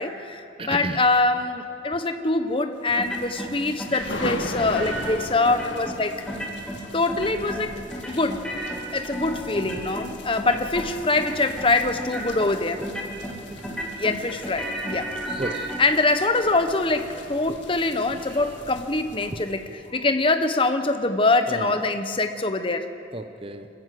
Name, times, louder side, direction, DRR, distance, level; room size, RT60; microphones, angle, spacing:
voice 1, 0.0-6.2 6.9-7.8 8.1-8.4 8.9-12.8 13.9-15.1 15.8-19.6 19.9-22.9, left 2 dB, 30° left, 8 dB, 0.9 m, -24 dB
voice 2, 0.6-1.0 5.6-5.7 9.8-9.9 12.8-12.9 13.1-13.9 15.3-15.7 17.5-17.6 18.1-18.6 19.2-19.4 21.5-22.0 23.1-23.7, right 2 dB, 30° right, 9 dB, 0.7 m, -35 dB
sound 1, 2.9-19.9, left 1 dB, 75° left, 1.8 m, -39 dB
sound 2, 3.0-3.5 3.8-5.1 5.4-6.0 6.3-6.8 7.1-7.6 7.9-10.1 10.4-10.9 11.2-11.7 12.0-12.5 12.8-13.4 13.6-15.8, right 1 dB, 5° left, 2.6 m, -33 dB
25.5 x 14.5 x 7.7 m, 2.7 s
head